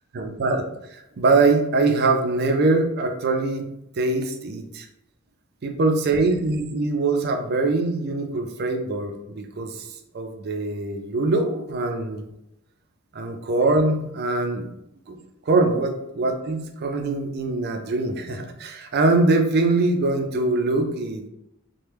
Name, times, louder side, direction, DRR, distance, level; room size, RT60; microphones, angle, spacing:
voice 1, 0.1-3.7 4.0-4.9 5.6-9.9 10.1-12.3 13.1-14.7 15.1-15.2 15.5-21.3, right 3 dB, 50° right, 5 dB, 0.4 m, -23 dB
3.2 x 2.1 x 3.1 m, 0.84 s
head